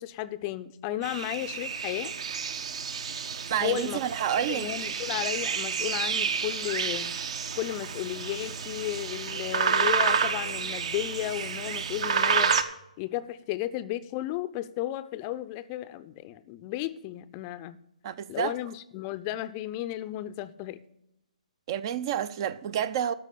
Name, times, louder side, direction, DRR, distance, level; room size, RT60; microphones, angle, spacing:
voice 1, 0.0-2.1 3.6-4.0 4.4-7.1 7.6-12.5 13.0-17.8 18.3-20.8, left 14 dB, 25° left, 0.5 m, -34 dB
sound 1, 1.0-12.6, right 6 dB, 50° right, 1.0 m, -30 dB
voice 2, 3.5-4.7 18.0-18.5 21.7-23.1, right 9 dB, 35° right, 0.5 m, -29 dB
13.0 x 4.8 x 8.5 m
figure-of-eight pair, 140°, 4 cm